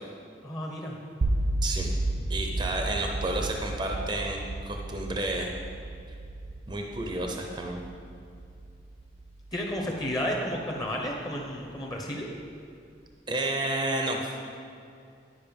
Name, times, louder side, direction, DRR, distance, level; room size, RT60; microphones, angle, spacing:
voice 1, 0.4-1.0 9.5-12.3, equal, 20° left, -1 dB, 1.0 m, -32 dB
sound 1, 1.2-11.2, right 2 dB, 60° right, 0.5 m, -33 dB
voice 2, 2.3-5.5 6.7-7.8 13.3-14.3, right 2 dB, 25° right, 2 dB, 0.7 m, -31 dB
10.5 x 5.2 x 5.3 m, 2.4 s
head